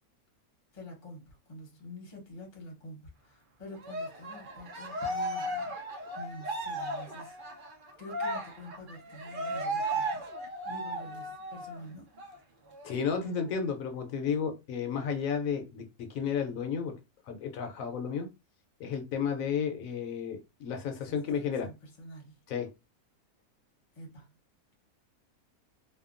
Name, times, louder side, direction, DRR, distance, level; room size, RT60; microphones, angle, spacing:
voice 1, 0.7-5.7 6.1-7.4 8.0-10.3 10.6-12.1 21.1-22.3 23.9-24.3, left 1 dB, 35° left, 0.8 m, -47 dB
Cheering, 3.8-11.8 12.2-12.3 12.7-13.7, right 1 dB, 70° right, 0.5 m, -36 dB
voice 2, 12.8-15.8 16.1-16.9 17.3-18.3 18.8-21.7 22.5-22.7, left 6 dB, 70° left, 0.9 m, -32 dB
2.7 x 2.2 x 2.4 m
omnidirectional pair, 1.6 m